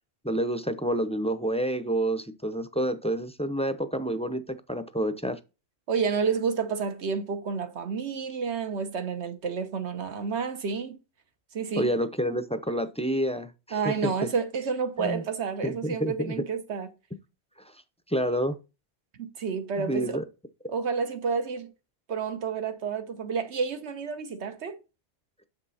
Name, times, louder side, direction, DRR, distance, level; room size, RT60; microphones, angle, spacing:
voice 1, 0.2-5.4 11.8-14.3 15.0-15.2 15.6-16.4 18.1-18.6 19.8-20.2, right 1 dB, 10° left, 0.5 m, -29 dB
voice 2, 5.9-11.0 11.5-11.9 13.7-16.9 19.2-20.2 20.7-21.7 22.1-24.8, right 5 dB, 80° right, 1.3 m, -30 dB
7.9 x 6.0 x 4.1 m
omnidirectional pair, 1.1 m